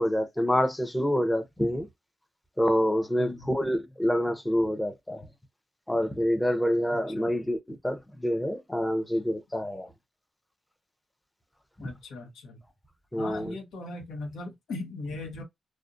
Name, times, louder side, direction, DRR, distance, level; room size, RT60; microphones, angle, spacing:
voice 1, 0.0-1.9 2.6-5.2 5.9-9.9 13.1-13.4, equal, 10° left, 0.6 m, -27 dB
voice 2, 3.2-3.6 6.9-7.3 11.8-12.6 13.2-15.4, left 2 dB, 90° left, 0.8 m, -39 dB
2.5 x 2.0 x 2.4 m
cardioid pair, 75°, 0 cm